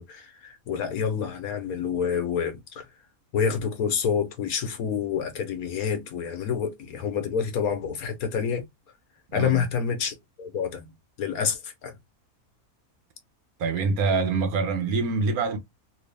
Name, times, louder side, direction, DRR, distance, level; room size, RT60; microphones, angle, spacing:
voice 1, 0.0-2.8 3.3-8.6 9.3-10.9 11.2-11.9, left 7 dB, 75° left, 1.3 m, -28 dB
voice 2, 9.3-9.7 13.6-15.6, right 4 dB, 75° right, 1.3 m, -25 dB
3.4 x 2.7 x 3.3 m
omnidirectional pair, 1.6 m